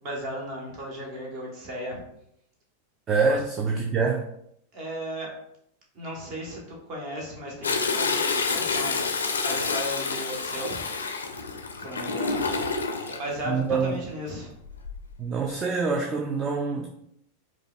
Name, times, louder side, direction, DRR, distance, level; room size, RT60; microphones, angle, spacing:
voice 1, 0.0-2.0 3.3-3.4 4.7-5.3 5.9-10.9 11.8-12.5 13.1-14.5, equal, 40° right, -2 dB, 1.1 m, -35 dB
voice 2, 3.1-4.2 13.5-14.0 15.2-16.9, right 5 dB, 25° right, 1 dB, 0.4 m, -25 dB
Toilet flush, 7.6-13.2 14.7-15.1 15.6-15.7, left 4 dB, 70° left, 0.4 m, -28 dB
4.8 x 2.3 x 2.3 m, 0.74 s
figure-of-eight pair, 90°, 0 cm